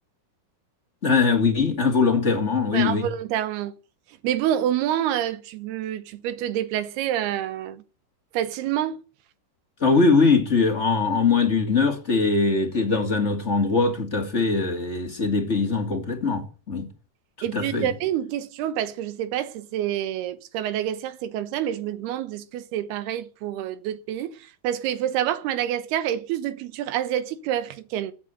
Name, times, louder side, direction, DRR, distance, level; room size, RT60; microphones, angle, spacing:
voice 1, 1.0-3.1 9.8-16.9 17.5-17.9, left 4 dB, 25° left, 1.7 m, -21 dB
voice 2, 2.7-3.7 4.2-7.8 8.3-9.0 17.4-24.4 24.6-28.1, right 11 dB, 85° right, 3.1 m, -27 dB
15.5 x 9.3 x 7.8 m
omnidirectional pair, 4.5 m